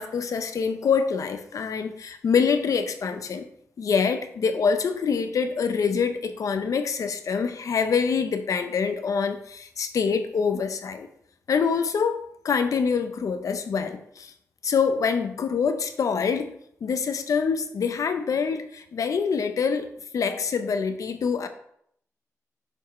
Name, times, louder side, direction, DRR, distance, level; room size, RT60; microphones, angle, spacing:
voice 1, 0.0-3.4 3.8-11.1 11.5-14.3 14.6-16.5 16.8-19.9 20.1-21.5, left 6 dB, 75° left, 9 dB, 0.7 m, -25 dB
6.4 x 6.3 x 3.2 m, 0.69 s
wide cardioid pair, 90°, 6 cm